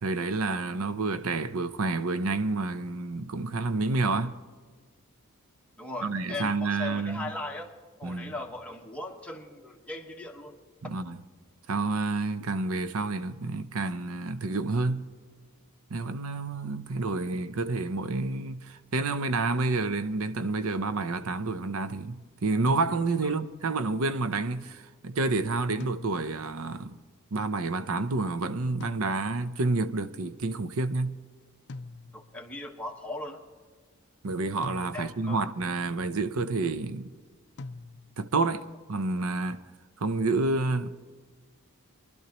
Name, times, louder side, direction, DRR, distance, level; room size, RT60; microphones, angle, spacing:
voice 1, 0.0-4.4 6.0-7.3 8.0-8.3 10.8-11.2 11.7-15.1 15.9-27.0 27.3-31.2 34.2-37.1 38.2-39.6 40.0-40.9, right 3 dB, 70° right, 0.6 m, -29 dB
voice 2, 5.8-7.7 8.0-10.6 23.2-23.3 32.1-33.4 34.9-35.5, left 2 dB, 5° left, 1.4 m, -38 dB
sound 1, 22.7-23.4 25.8-26.6 28.8-29.6 31.7-32.5 34.6-35.4 37.6-38.4, left 3 dB, 55° left, 0.5 m, -44 dB
24.0 x 12.0 x 3.0 m
head